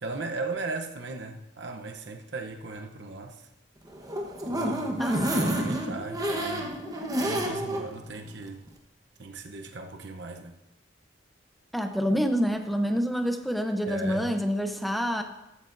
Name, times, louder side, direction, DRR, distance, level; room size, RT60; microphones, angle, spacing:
voice 1, 0.0-3.5 4.5-5.1 5.4-6.7 7.2-8.6 9.2-10.5 13.9-14.3, right 3 dB, 65° right, 4 dB, 0.9 m, -37 dB
sound 1, 3.9-7.9 8.3-8.4 8.7-8.8, right 1 dB, 20° right, 1.2 m, -29 dB
voice 2, 5.0-5.5 11.7-15.2, equal, ahead, 5 dB, 0.8 m, -27 dB
14.5 x 12.5 x 2.7 m, 0.91 s
head